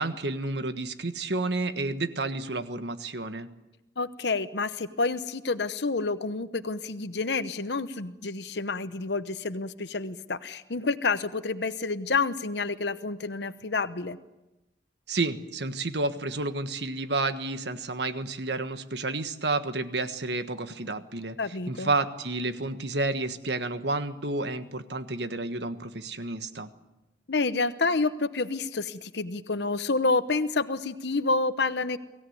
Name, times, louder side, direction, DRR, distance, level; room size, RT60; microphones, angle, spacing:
voice 1, 0.0-3.5 15.1-21.4 21.7-26.7, right 2 dB, 70° right, 10 dB, 1.5 m, -30 dB
voice 2, 4.0-14.2 21.4-21.9 27.3-32.0, left 3 dB, 70° left, 11 dB, 0.9 m, -29 dB
24.0 x 16.5 x 9.5 m, 0.99 s
head